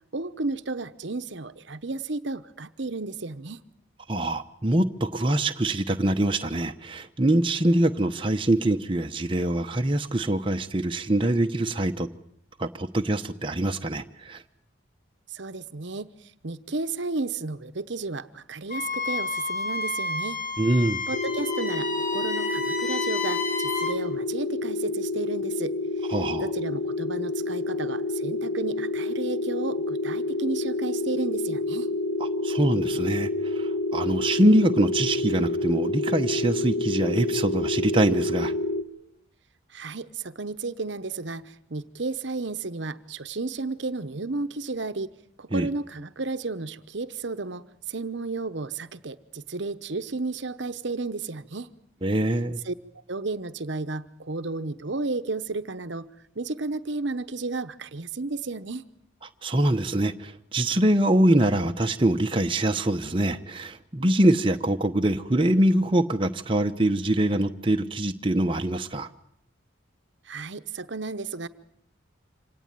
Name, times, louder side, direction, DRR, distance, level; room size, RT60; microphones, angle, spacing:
voice 1, 0.1-3.6 15.3-16.1 16.4-20.4 21.1-25.8 26.0-26.1 26.4-31.9 39.7-45.1 45.4-51.7 52.6-52.7 53.1-56.1 56.4-58.8 70.3-71.5, right 3 dB, 60° right, 12 dB, 1.0 m, -33 dB
voice 2, 4.1-12.1 12.6-14.4 20.6-21.0 26.1-26.5 32.4-38.5 45.5-45.7 52.0-52.6 59.4-69.1, right 1 dB, 25° right, 4 dB, 0.9 m, -24 dB
Wind instrument woodwind instrument, 18.7-24.0, left 3 dB, 40° left, 2.2 m, -30 dB
sound 1, 21.1-38.8, left 2 dB, 85° left, 1.5 m, -28 dB
26.0 x 18.0 x 9.0 m, 0.70 s
head